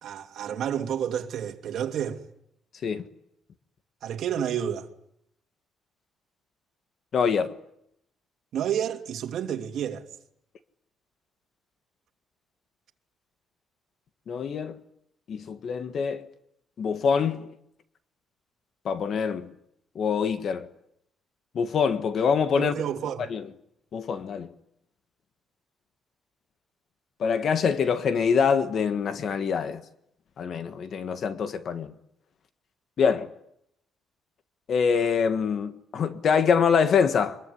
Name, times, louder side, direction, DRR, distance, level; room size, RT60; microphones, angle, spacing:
voice 1, 0.0-2.2 4.0-4.9 8.5-10.0 22.6-23.3, right 9 dB, 60° right, 2.7 m, -30 dB
voice 2, 7.1-7.5 14.3-14.8 15.3-16.2 16.8-17.5 18.8-19.5 19.9-20.7 21.5-22.7 23.3-23.4 23.9-24.5 27.2-29.8 30.4-31.9 33.0-33.3 34.7-37.4, left 6 dB, 45° left, 1.6 m, -25 dB
24.5 x 22.5 x 9.9 m
cardioid pair, 155°, 0 cm